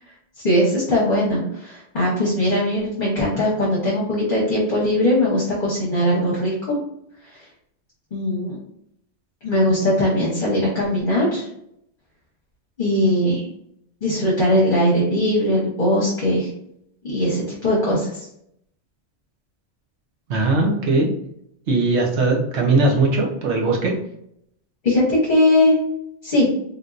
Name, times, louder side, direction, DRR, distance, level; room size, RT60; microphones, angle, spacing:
voice 1, 0.4-6.8 8.1-8.6 9.4-11.5 12.8-13.5 14.0-16.5 17.0-18.2 24.8-25.8 26.2-26.5, left 1 dB, 45° left, -6 dB, 1.1 m, -20 dB
voice 2, 20.3-21.1 21.7-23.9, right 3 dB, 70° right, 0 dB, 1.1 m, -19 dB
3.5 x 2.6 x 2.4 m, 0.73 s
omnidirectional pair, 1.2 m